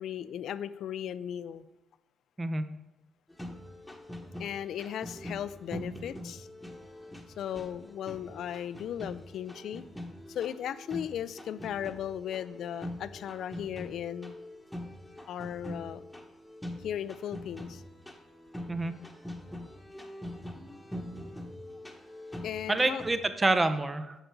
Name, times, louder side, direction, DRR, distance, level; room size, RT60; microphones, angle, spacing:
voice 1, 0.0-1.7 4.4-6.5 7.4-9.8 10.3-14.4 15.3-16.0 16.8-17.8 22.4-23.0, left 9 dB, 70° left, 15 dB, 0.4 m, -36 dB
voice 2, 2.4-2.7 18.7-18.9 22.7-24.1, right 2 dB, 20° right, 10 dB, 0.7 m, -27 dB
sound 1, 3.3-23.2, left 1 dB, 5° left, 1.3 m, -43 dB
7.9 x 6.5 x 4.6 m, 0.97 s
cardioid pair, 90°, 0 cm